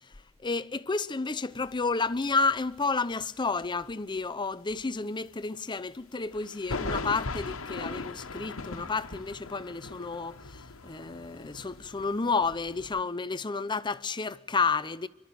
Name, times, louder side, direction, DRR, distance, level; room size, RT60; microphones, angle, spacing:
voice 1, 0.4-15.1, left 4 dB, 20° left, 0.6 m, -31 dB
sound 1, 1.5-3.2 3.5-4.2 4.7-4.8 6.3-13.0, left 3 dB, 85° left, 1.4 m, -39 dB
25.5 x 12.0 x 9.1 m
head